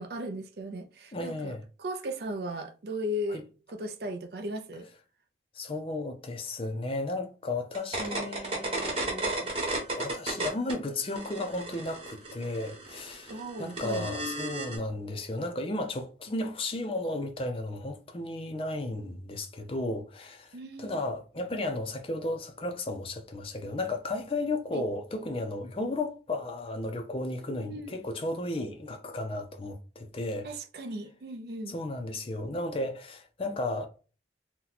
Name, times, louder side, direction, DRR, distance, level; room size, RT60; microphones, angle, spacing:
voice 1, 0.0-3.4 3.7-4.9 13.3-14.1 20.5-21.0 24.7-24.8 27.5-28.0 30.4-31.7, equal, 60° right, 0.5 m, -37 dB
voice 2, 1.1-1.6 3.3-3.4 5.5-9.6 9.9-30.5 31.7-33.9, left 2 dB, 30° left, 0.4 m, -34 dB
sound 1, 7.7-10.7 11.0-14.8, right 2 dB, 30° right, 1.1 m, -33 dB
2.8 x 2.2 x 3.9 m
head